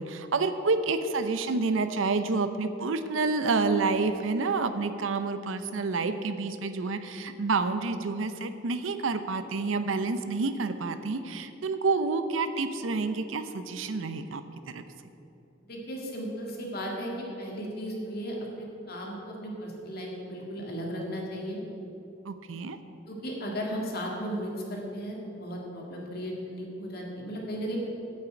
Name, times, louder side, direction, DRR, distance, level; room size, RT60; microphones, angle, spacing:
voice 1, 0.0-14.4 14.7-14.8 22.3-22.8, right 3 dB, 90° right, 10 dB, 0.6 m, -29 dB
voice 2, 15.7-21.6 23.1-27.8, equal, 55° left, -1 dB, 1.9 m, -35 dB
9.1 x 5.9 x 7.8 m, 3.0 s
head